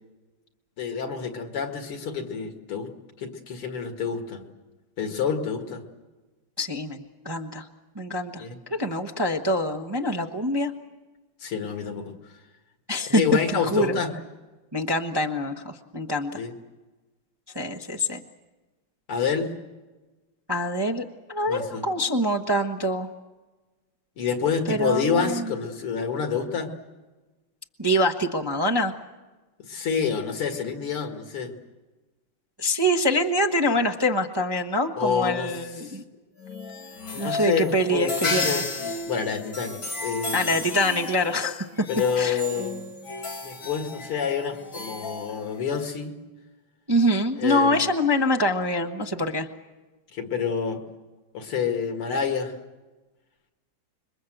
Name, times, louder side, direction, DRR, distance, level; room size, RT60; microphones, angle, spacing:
voice 1, 0.8-2.9 3.2-4.4 5.0-5.8 8.4-8.6 11.4-12.1 13.1-14.1 16.3-16.5 19.1-19.5 21.5-21.9 24.2-26.7 29.6-31.5 35.0-35.5 35.8-36.0 37.1-38.7 39.1-40.6 41.9-42.9 43.4-46.2 47.4-47.9 50.1-50.8 51.3-52.5, left 6 dB, 90° left, 5 dB, 2.9 m, -28 dB
voice 2, 6.6-7.7 7.9-8.4 8.7-10.7 12.9-13.2 13.7-13.9 14.7-16.4 17.5-18.2 20.5-23.1 24.7-25.5 27.8-28.9 32.6-36.0 37.2-38.6 40.3-41.7 42.2-42.4 46.9-49.5, equal, 20° right, 3 dB, 0.6 m, -25 dB
sound 1, 36.4-45.9, left 3 dB, 65° left, 2.6 m, -33 dB
26.5 x 22.5 x 7.9 m, 1.2 s
omnidirectional pair, 2.3 m